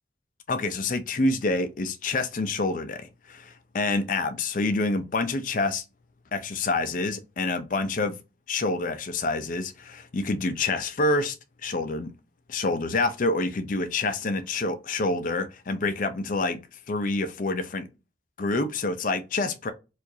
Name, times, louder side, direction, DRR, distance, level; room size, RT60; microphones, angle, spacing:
voice 1, 0.5-5.8 6.3-8.2 8.5-11.4 11.6-12.1 12.5-16.6 16.9-17.9 18.4-19.7, left 2 dB, 45° left, 0.5 m, -27 dB
4.5 x 2.5 x 2.7 m
head